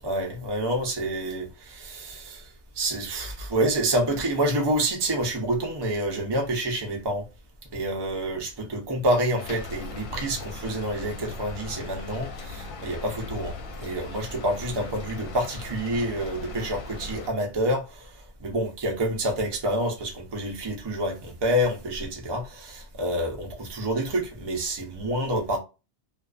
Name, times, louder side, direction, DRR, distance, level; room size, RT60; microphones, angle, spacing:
voice 1, 0.0-7.3 7.7-25.6, right 1 dB, 40° right, 0.4 m, -28 dB
Rain, 9.4-17.3, left 3 dB, 80° left, 1.0 m, -38 dB
2.4 x 2.3 x 2.3 m
omnidirectional pair, 1.4 m